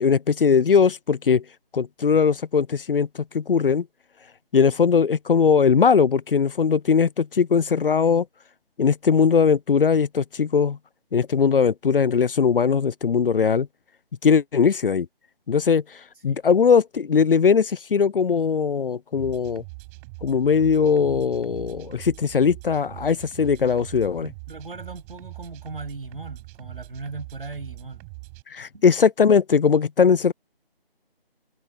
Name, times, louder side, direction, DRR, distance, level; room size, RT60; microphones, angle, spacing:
voice 1, 0.0-1.4 1.7-3.9 4.5-8.3 8.8-10.8 11.1-13.7 14.2-15.1 15.5-15.8 16.2-19.6 20.2-24.3 28.5-30.3, left 6 dB, 65° left, 0.5 m, -20 dB
sound 1, 19.1-28.4, right 28 dB, 15° right, 7.6 m, -42 dB
voice 2, 24.2-28.0 28.7-28.9, right 3 dB, 65° right, 7.7 m, -38 dB
figure-of-eight pair, 165°, 30 cm